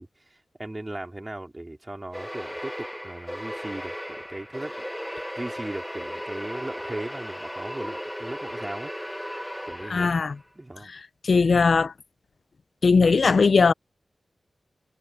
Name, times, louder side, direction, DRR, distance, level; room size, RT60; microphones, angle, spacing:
voice 1, 0.0-4.8 5.1-9.2 9.7-10.2 10.6-10.9, right 1 dB, 20° right, 3.8 m, -38 dB
sound 1, 2.1-10.4, equal, ahead, 1.4 m, -36 dB
voice 2, 9.9-10.3 11.2-11.9 12.8-13.7, left 4 dB, 65° left, 0.5 m, -19 dB
wide cardioid pair, 65°, 0 cm